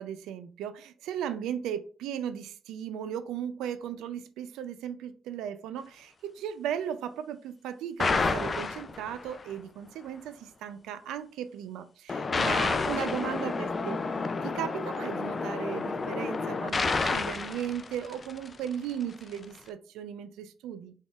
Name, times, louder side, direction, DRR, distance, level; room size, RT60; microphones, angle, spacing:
voice 1, 0.0-14.0 14.4-20.9, right 9 dB, 90° right, 12 dB, 0.4 m, -36 dB
sound 1, 8.0-9.4 12.1-18.6, left 4 dB, 35° left, 0.4 m, -30 dB
4.0 x 3.5 x 2.3 m, 0.41 s
cardioid pair, 90°, 0 cm